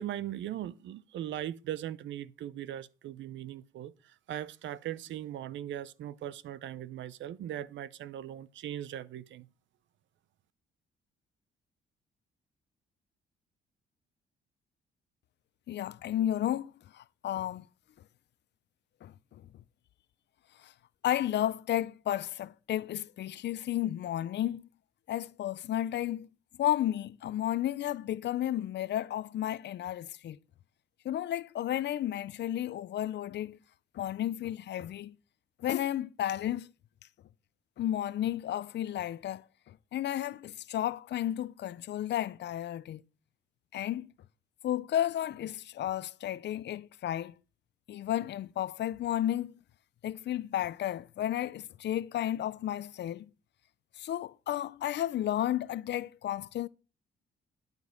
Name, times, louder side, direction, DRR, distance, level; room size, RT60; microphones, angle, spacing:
voice 1, 0.0-9.5, right 11 dB, 70° right, 0.6 m, -39 dB
voice 2, 15.7-17.6 19.0-19.1 20.6-20.7 21.0-24.7 25.1-26.3 26.6-30.4 31.0-33.6 33.9-35.1 35.6-36.7 37.8-43.0 43.7-44.1 44.6-47.3 47.9-49.5 50.0-53.3 54.0-56.7, left 12 dB, 60° left, 0.5 m, -32 dB
11.5 x 5.3 x 6.3 m
cardioid pair, 90°, 20 cm